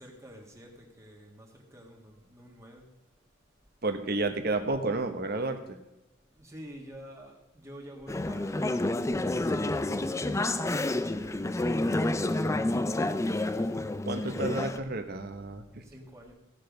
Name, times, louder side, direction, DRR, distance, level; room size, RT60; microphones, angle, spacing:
voice 1, 0.0-2.9 6.3-10.7 11.4-12.6 13.3-13.8 15.8-16.3, equal, 15° right, 0 dB, 1.7 m, -49 dB
voice 2, 3.8-5.8 14.0-15.8, right 2 dB, 50° right, 7 dB, 1.1 m, -31 dB
Conversation / Chatter, 8.1-14.8, left 2 dB, 15° left, 0.4 m, -29 dB
15.5 x 6.7 x 5.3 m, 0.97 s
head